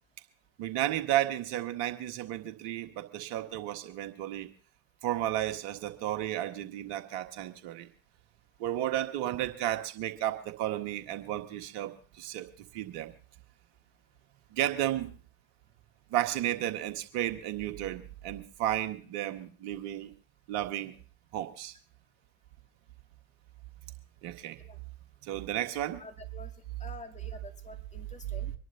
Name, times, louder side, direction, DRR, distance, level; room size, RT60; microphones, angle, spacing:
voice 1, 0.6-4.5 5.0-7.9 8.6-13.1 14.5-15.1 16.1-20.1 20.5-21.0 21.3-21.7 24.2-24.6 25.2-26.0, right 13 dB, 70° right, 6 dB, 1.6 m, -33 dB
voice 2, 26.0-26.5 26.8-28.5, left 3 dB, 20° left, 4 dB, 2.5 m, -48 dB
25.5 x 11.0 x 2.8 m, 0.41 s
hypercardioid pair, 60°, 32 cm